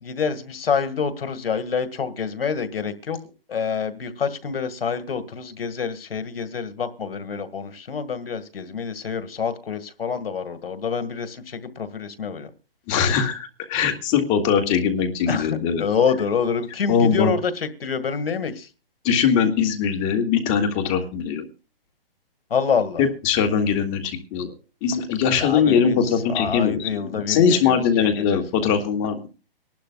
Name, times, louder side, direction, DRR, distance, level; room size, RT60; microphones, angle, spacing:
voice 1, 0.0-3.2 3.5-12.5 15.3-18.7 22.5-23.0 25.4-26.0 26.3-27.8 28.2-28.4, left 6 dB, 75° left, 1.9 m, -27 dB
voice 2, 12.9-15.9 16.9-17.3 19.0-21.4 23.0-24.5 24.8-29.3, left 7 dB, 25° left, 1.8 m, -21 dB
25.0 x 12.0 x 2.3 m
hypercardioid pair, 155°, 29 cm